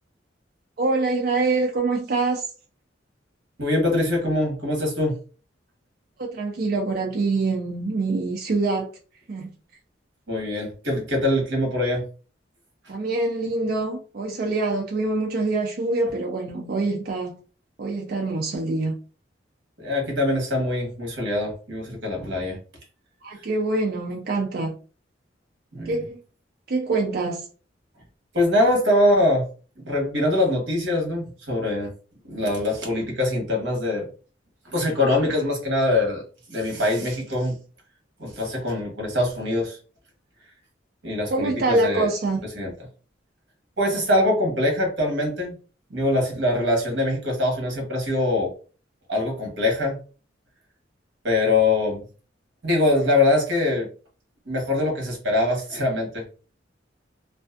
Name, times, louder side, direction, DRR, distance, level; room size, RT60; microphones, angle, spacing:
voice 1, 0.8-2.5 6.2-8.9 9.3-9.5 12.9-17.3 17.8-18.9 23.2-24.7 25.9-26.2 26.7-27.4 41.3-42.4, right 3 dB, 55° right, 0.4 m, -25 dB
voice 2, 3.6-5.2 10.3-12.0 19.8-22.6 23.3-23.4 25.7-26.1 28.3-29.5 29.8-31.9 32.2-34.1 34.6-37.6 38.2-39.8 41.0-42.1 42.5-42.7 43.8-45.5 45.9-48.5 49.1-50.0 51.2-52.1 52.6-53.9 54.5-56.2, left 1 dB, 70° right, 1.1 m, -23 dB
2.4 x 2.3 x 2.4 m
head